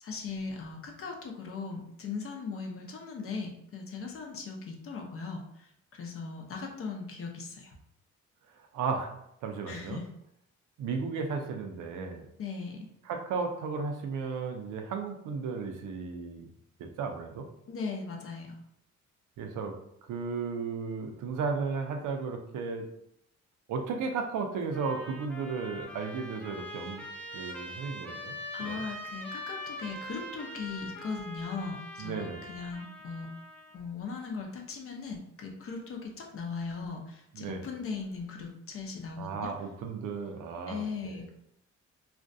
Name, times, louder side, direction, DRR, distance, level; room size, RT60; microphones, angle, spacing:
voice 1, 0.0-5.4 5.9-7.7 9.7-10.0 12.4-12.9 17.7-18.5 28.5-33.3 33.7-39.5 40.7-41.3, left 4 dB, 45° left, 2 dB, 0.6 m, -38 dB
voice 2, 8.7-9.1 9.4-10.0 10.8-12.2 13.0-16.5 16.8-17.5 19.4-19.8 20.1-22.9 23.7-27.0 27.3-28.8 32.0-32.5 37.3-37.7 39.2-41.3, right 5 dB, 80° right, 4 dB, 0.5 m, -34 dB
Trumpet, 24.7-33.8, left 1 dB, 5° left, 0.4 m, -43 dB
2.4 x 2.1 x 2.5 m, 0.76 s
cardioid pair, 90°, 30 cm